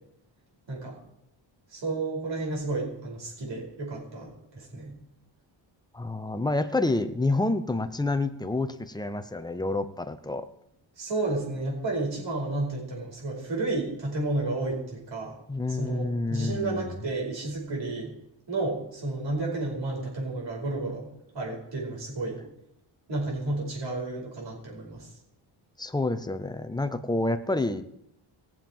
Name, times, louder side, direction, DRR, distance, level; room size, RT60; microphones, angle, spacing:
voice 1, 1.7-5.0 11.0-15.4 15.7-18.1 18.5-22.4 23.1-25.1, right 2 dB, 65° right, -2 dB, 5.2 m, -32 dB
voice 2, 5.9-10.5 15.5-17.0 25.8-27.8, left 2 dB, 10° left, 9 dB, 0.7 m, -28 dB
20.0 x 7.4 x 4.5 m, 0.81 s
wide cardioid pair, 140°, 46 cm